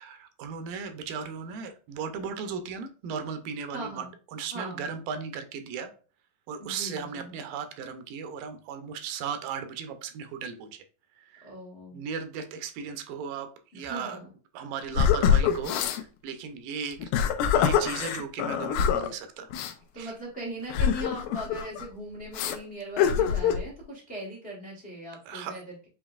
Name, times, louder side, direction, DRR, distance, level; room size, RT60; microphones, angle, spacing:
voice 1, 0.0-4.0 4.3-5.9 6.5-10.8 11.2-11.5 11.9-13.5 13.7-14.2 14.5-17.1 17.5-19.5 20.0-20.1 25.3-25.5, right 6 dB, 80° right, 8 dB, 2.3 m, -36 dB
voice 2, 3.7-4.1 4.5-4.9 6.6-7.4 11.4-12.0 13.7-14.3 19.9-25.9, right 1 dB, 65° left, -3 dB, 0.5 m, -39 dB
sound 1, 14.9-16.0 16.9-19.1 19.5-19.7 20.7-21.8 22.3-22.6 23.0-23.6, left 8 dB, 80° left, 2.2 m, -24 dB
7.1 x 3.0 x 2.4 m, 0.39 s
omnidirectional pair, 4.0 m